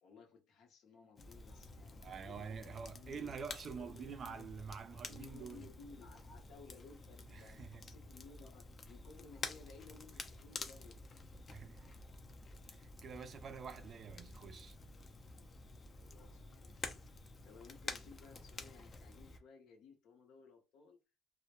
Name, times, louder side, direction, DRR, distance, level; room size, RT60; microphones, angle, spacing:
voice 1, 0.0-3.3 3.7-4.5 5.1-11.0 16.0-16.9 17.4-21.0, left 5 dB, 65° left, 0.7 m, -58 dB
Crackle, 1.2-19.4, left 3 dB, 30° left, 0.4 m, -50 dB
voice 2, 2.0-5.7 7.3-7.9 11.5-12.0 12.7-14.8, right 6 dB, 40° right, 0.3 m, -47 dB
2.1 x 2.1 x 2.8 m
cardioid pair, 130°, 0 cm